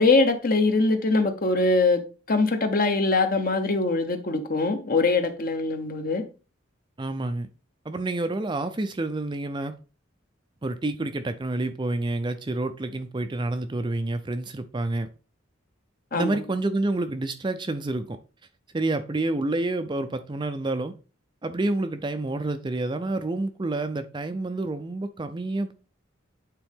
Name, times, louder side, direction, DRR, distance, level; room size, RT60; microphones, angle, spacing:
voice 1, 0.0-2.0 2.3-6.2 16.1-16.4, left 3 dB, 45° left, 1.0 m, -22 dB
voice 2, 7.0-7.5 7.9-9.8 10.6-15.1 16.1-18.2 18.7-20.9 21.4-25.7, right 2 dB, 20° right, 0.4 m, -28 dB
8.8 x 3.8 x 3.6 m
head